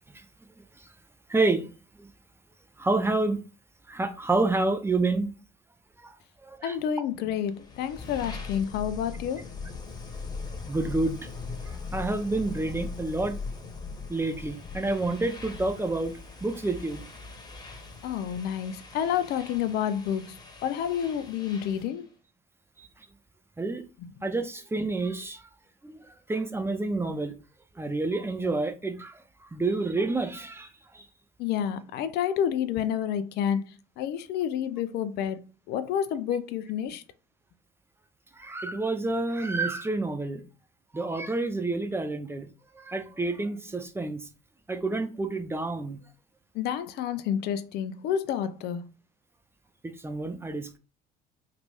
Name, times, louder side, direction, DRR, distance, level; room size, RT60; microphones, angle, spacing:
voice 1, 1.3-1.7 2.0-2.1 2.8-3.4 3.9-5.3 6.0-6.2 6.4-6.8 10.7-11.2 11.7-13.4 14.1-16.1 16.4-17.0 22.8-22.9 23.6-23.8 24.2-25.4 25.8-27.3 27.8-30.7 30.9-31.0 38.4-40.4 40.9-42.5 42.7-44.2 44.7-46.0 49.8-50.8, right 2 dB, 10° right, 0.6 m, -29 dB
voice 2, 6.6-9.5 18.0-22.1 31.4-37.0 46.5-48.9, left 9 dB, 50° left, 0.4 m, -29 dB
sound 1, 7.4-22.0, left 4 dB, 20° left, 1.1 m, -40 dB
3.2 x 2.4 x 3.5 m
hypercardioid pair, 65°, 21 cm